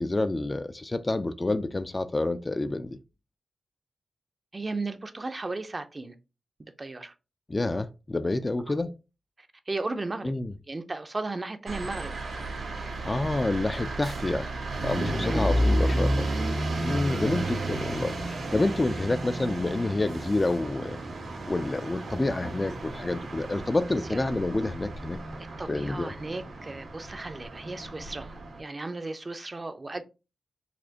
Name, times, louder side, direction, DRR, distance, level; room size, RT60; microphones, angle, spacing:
voice 1, 0.0-3.0 7.5-9.0 10.2-10.5 13.0-14.5 14.8-16.3 16.8-18.1 18.5-21.0 21.5-25.2 25.7-26.1, left 2 dB, 30° left, 0.3 m, -28 dB
voice 2, 4.5-6.1 6.6-7.1 8.7-8.8 9.7-10.3 10.7-12.1 15.2-15.5 17.0-17.3 24.1-24.3 25.4-30.0, right 3 dB, 35° right, 0.5 m, -35 dB
sound 1, 11.7-28.6, right 1 dB, 70° right, 1.7 m, -32 dB
4.1 x 2.4 x 2.8 m
cardioid pair, 60°, 0 cm